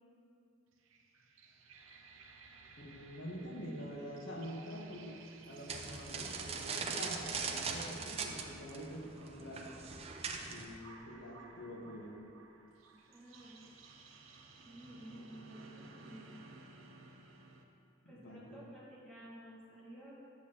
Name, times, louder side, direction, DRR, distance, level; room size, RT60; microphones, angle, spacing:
sound 1, 0.7-17.6, right 3 dB, 85° right, 0.6 m, -58 dB
voice 1, 2.8-9.8 10.3-12.2 18.0-18.6, equal, 65° left, -1 dB, 1.0 m, -46 dB
sound 2, 5.7-10.8, right 5 dB, 30° right, 0.4 m, -40 dB
voice 2, 13.1-13.6 14.6-16.3 18.1-20.1, right 1 dB, 5° left, -9 dB, 1.2 m, -53 dB
8.7 x 7.0 x 2.8 m, 2.5 s
head